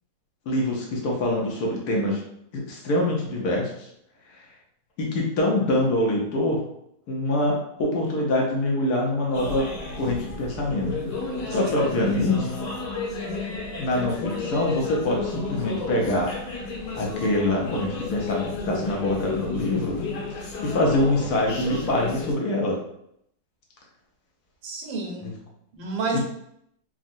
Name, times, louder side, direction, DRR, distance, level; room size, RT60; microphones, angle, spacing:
voice 1, 0.5-2.2 2.5-3.9 5.0-6.6 7.1-9.7 9.9-10.9 11.5-12.5 13.8-16.3 16.6-16.7 16.9-20.0 20.6-22.8 26.1-26.2, left 1 dB, 70° left, -2 dB, 1.1 m, -24 dB
sound 1, 9.3-22.3, left 3 dB, 85° left, 1.5 m, -32 dB
voice 2, 11.4-11.9 24.6-25.3 25.7-26.2, right 3 dB, 90° right, 0 dB, 1.5 m, -30 dB
3.6 x 2.1 x 2.5 m, 0.75 s
omnidirectional pair, 2.0 m